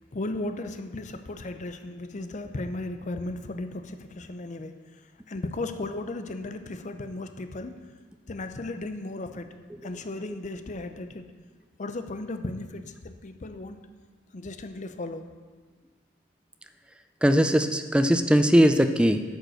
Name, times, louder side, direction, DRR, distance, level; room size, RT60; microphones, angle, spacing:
voice 1, 0.1-4.8 5.3-7.8 8.3-9.5 9.8-11.3 11.8-13.9 14.3-15.3, left 2 dB, 40° left, 8 dB, 0.6 m, -35 dB
voice 2, 17.2-19.2, equal, 5° right, 8 dB, 0.4 m, -20 dB
10.5 x 5.3 x 6.3 m, 1.5 s
head